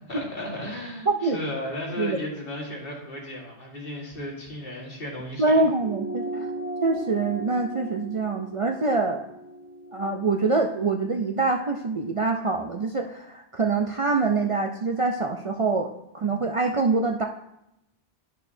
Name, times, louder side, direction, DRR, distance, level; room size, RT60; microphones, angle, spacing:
voice 1, 0.1-5.6, left 1 dB, 55° left, -1 dB, 1.9 m, -34 dB
voice 2, 1.1-1.4 2.0-2.2 5.4-6.5 6.8-9.2 9.9-15.9 16.1-17.2, right 3 dB, 55° right, 3 dB, 0.3 m, -25 dB
sound 1, 5.8-10.6, right 1 dB, 85° right, 1.1 m, -37 dB
11.0 x 6.4 x 2.6 m, 0.84 s
omnidirectional pair, 1.2 m